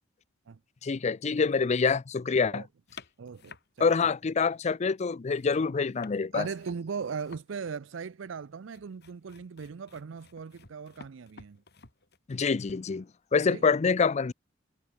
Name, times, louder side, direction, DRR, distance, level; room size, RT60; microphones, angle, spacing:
voice 1, 0.8-2.6 3.8-6.5 12.3-13.1 13.3-14.3, left 5 dB, 35° left, 0.4 m, -26 dB
sound 1, 2.9-4.7 5.0-12.2, left 4 dB, 55° left, 3.7 m, -54 dB
voice 2, 3.2-3.9 6.3-11.6 13.5-13.7, right 6 dB, 70° right, 0.5 m, -38 dB
head